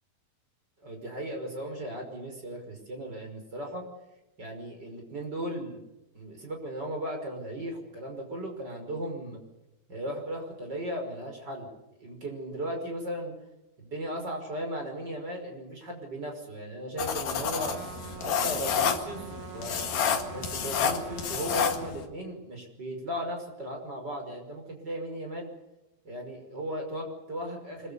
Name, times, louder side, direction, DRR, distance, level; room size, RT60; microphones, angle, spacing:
voice 1, 0.8-3.8 4.4-5.8 6.1-9.4 9.9-11.7 12.0-13.3 13.8-17.8 18.2-19.3 19.5-19.8 20.3-25.5 26.0-27.9, right 1 dB, 25° right, 2 dB, 5.9 m, -36 dB
sound 1, 17.0-22.1, left 7 dB, 60° left, 3.6 m, -30 dB
Trumpet, 17.5-21.9, right 11 dB, 65° right, 3.0 m, -44 dB
25.5 x 23.0 x 7.0 m, 0.97 s
omnidirectional pair, 5.0 m